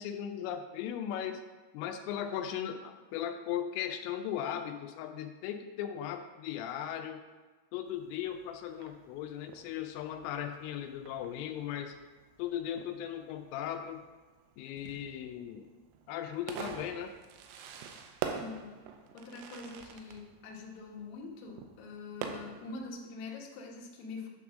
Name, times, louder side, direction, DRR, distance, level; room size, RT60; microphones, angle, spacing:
voice 1, 0.0-1.4 1.7-7.2 7.7-12.0 12.4-14.0 14.6-15.7 16.1-17.1, left 10 dB, 85° left, 6 dB, 3.1 m, -37 dB
Fireworks, 7.9-22.9, right 7 dB, 85° right, 3.2 m, -46 dB
voice 2, 18.3-18.8 19.1-24.3, left 3 dB, 70° left, -2 dB, 2.7 m, -44 dB
10.5 x 3.6 x 6.0 m, 1.3 s
omnidirectional pair, 5.7 m